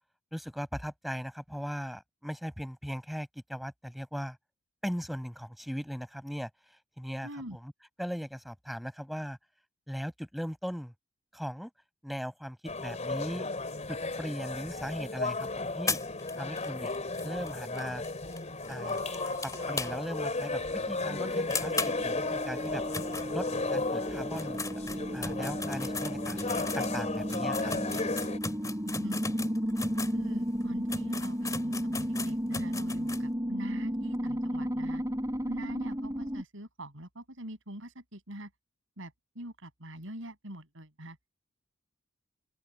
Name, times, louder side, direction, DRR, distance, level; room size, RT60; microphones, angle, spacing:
voice 1, 0.3-4.4 4.8-7.7 8.0-9.4 9.9-10.9 11.3-11.7 12.0-13.5 13.9-16.0 16.4-16.9 17.2-18.0 18.7-19.0 19.4-22.8 23.3-24.8 25.1-26.4 26.7-28.0, equal, ahead, 5.2 m, -38 dB
voice 2, 7.2-7.6 28.9-29.2 29.9-35.0 35.5-38.5 39.0-41.2, right 1 dB, 65° right, 7.4 m, -44 dB
sound 1, 12.7-28.4, left 3 dB, 35° left, 4.2 m, -34 dB
sound 2, 15.9-20.3 20.6-20.7 21.0-21.1 21.5-23.8 24.2-30.2 30.6-30.7 30.9-33.3, left 4 dB, 15° left, 2.4 m, -38 dB
sound 3, 18.8-20.0 20.4-36.4, equal, 15° right, 3.3 m, -34 dB
open air
head